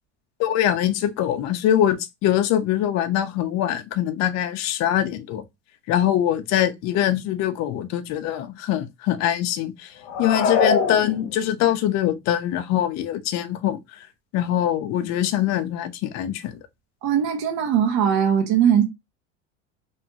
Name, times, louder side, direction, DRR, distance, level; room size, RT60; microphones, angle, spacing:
voice 1, 0.4-5.4 5.9-9.9 10.2-14.1 14.3-16.5, left 11 dB, 50° left, 0.6 m, -23 dB
sound 1, 10.0-11.7, left 5 dB, 75° left, 0.8 m, -22 dB
voice 2, 17.0-18.8, right 8 dB, 55° right, 0.9 m, -20 dB
3.1 x 2.2 x 2.8 m
hypercardioid pair, 85°, 35 cm